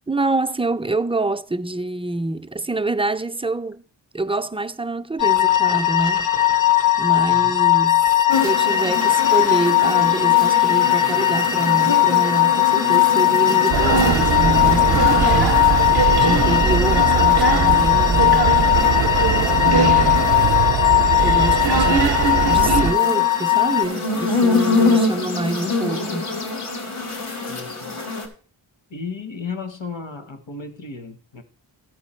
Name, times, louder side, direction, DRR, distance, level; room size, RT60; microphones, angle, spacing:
voice 1, 0.1-3.8 4.1-6.3 7.0-8.1 8.4-15.6 16.1-18.7 19.6-20.2 21.2-22.0 22.5-26.4, right 2 dB, 10° right, 0.4 m, -26 dB
sound 1, 5.2-23.9, left 13 dB, 40° left, 0.7 m, -18 dB
voice 2, 7.3-7.6 20.0-20.7 27.4-28.0 28.9-31.4, left 4 dB, 60° left, 1.3 m, -35 dB
sound 2, 8.3-28.3, left 3 dB, 85° left, 1.6 m, -26 dB
sound 3, 13.7-22.9, right 6 dB, 50° right, 0.7 m, -20 dB
13.0 x 4.8 x 4.3 m
cardioid pair, 50°, 50 cm